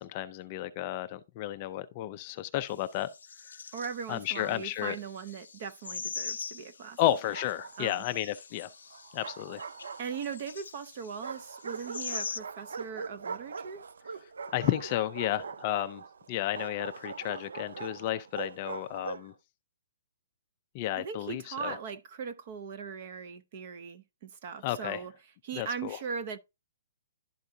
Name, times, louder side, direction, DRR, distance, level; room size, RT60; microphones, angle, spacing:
voice 1, 0.0-3.1 4.1-5.0 7.0-8.7 9.1-9.6 14.5-16.0 16.3-19.3 20.7-21.8 24.6-25.0 25.6-26.0, left 13 dB, 20° left, 0.3 m, -32 dB
sound 1, 2.7-2.8 3.0-12.4, left 6 dB, 85° left, 0.5 m, -43 dB
voice 2, 3.7-7.0 7.8-8.0 10.0-13.8 21.0-25.1 25.4-26.4, right 6 dB, 30° right, 0.6 m, -39 dB
Bark, 7.1-8.0 8.9-10.5 11.2-19.3, right 5 dB, 80° right, 0.5 m, -42 dB
11.5 x 4.7 x 2.6 m
hypercardioid pair, 180°, 0 cm